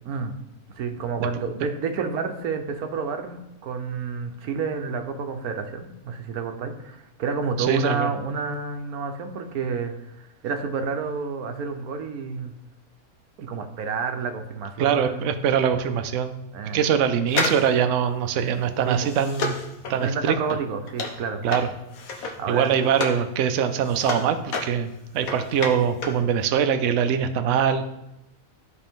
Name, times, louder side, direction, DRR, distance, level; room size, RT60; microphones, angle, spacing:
voice 1, 0.7-12.5 13.4-15.3 16.5-16.8 18.9-19.1 20.0-21.4 22.4-22.8, right 5 dB, 90° right, 6 dB, 1.3 m, -30 dB
voice 2, 7.7-8.1 14.8-16.3 16.7-19.5 19.9-20.4 21.4-21.7 22.2-24.9 25.1-27.8, right 8 dB, 65° right, 8 dB, 0.9 m, -23 dB
sound 1, 17.3-23.3 23.6-26.3 26.5-26.6, left 3 dB, 75° left, 1.4 m, -31 dB
12.5 x 4.4 x 3.6 m, 0.88 s
omnidirectional pair, 1.5 m